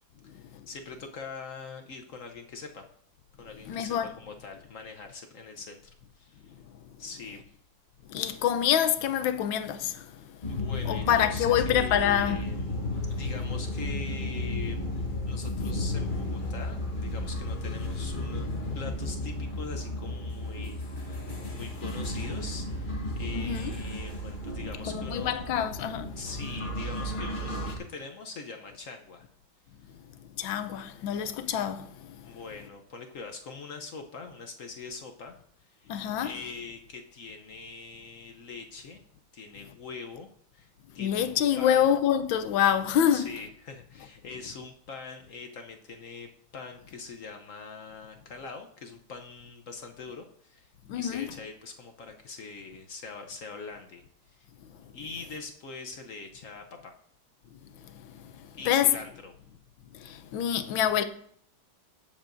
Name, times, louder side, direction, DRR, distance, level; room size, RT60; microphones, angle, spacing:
voice 1, 0.2-2.8 3.4-5.8 6.2-6.5 7.0-7.4 10.5-14.8 15.3-25.6 26.2-29.3 29.8-30.0 32.2-39.0 39.3-40.7 40.9-41.3 41.6-41.9 43.1-54.0 54.3-54.5 54.9-56.9 58.6-59.3, left 4 dB, 60° left, 0.9 m, -43 dB
voice 2, 3.7-4.1 8.1-10.2 10.9-12.4 23.3-23.7 24.9-26.2 30.4-32.3 35.9-36.3 41.0-43.3 50.9-51.3 58.0-58.3 58.7-58.9 59.9-61.0, left 9 dB, 80° left, 1.4 m, -26 dB
sound 1, 10.4-27.8, left 1 dB, 30° left, 1.0 m, -33 dB
17.0 x 7.3 x 2.6 m
omnidirectional pair, 2.2 m